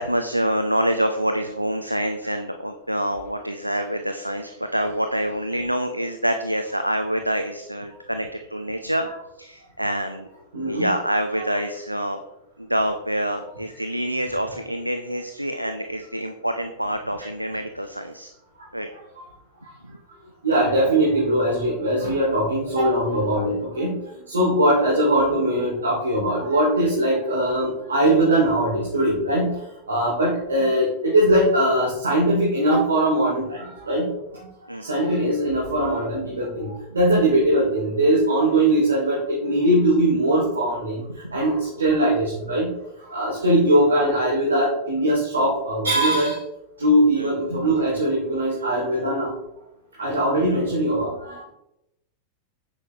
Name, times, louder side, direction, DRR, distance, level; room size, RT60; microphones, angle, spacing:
voice 1, 0.0-9.1 9.4-10.3 10.6-12.2 12.6-18.3 18.7-18.9 19.8-20.0 34.7-34.9 41.1-41.4 43.4-43.5 47.2-47.3 50.4-50.6, equal, 90° right, 7 dB, 0.6 m, -26 dB
voice 2, 10.5-10.9 18.9-19.2 20.4-29.6 29.9-34.1 34.3-34.5 34.8-41.0 41.3-42.7 43.0-46.4 46.8-49.3 50.0-51.5, right 1 dB, 70° right, -5 dB, 3.0 m, -21 dB
10.0 x 8.1 x 3.3 m, 0.87 s
figure-of-eight pair, 90°, 0 cm